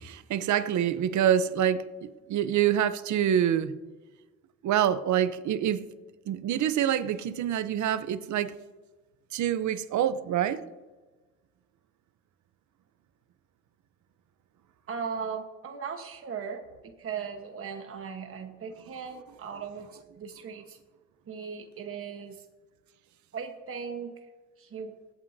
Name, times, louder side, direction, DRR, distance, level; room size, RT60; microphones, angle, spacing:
voice 1, 0.0-3.8 4.6-5.9 6.3-8.6 9.3-10.6, right 10 dB, 70° right, 0.8 m, -26 dB
voice 2, 14.9-19.9 20.2-20.8 21.3-22.4 23.3-24.1 24.6-24.9, right 6 dB, 45° right, 1.3 m, -38 dB
24.0 x 8.9 x 2.8 m
cardioid pair, 90°, 30 cm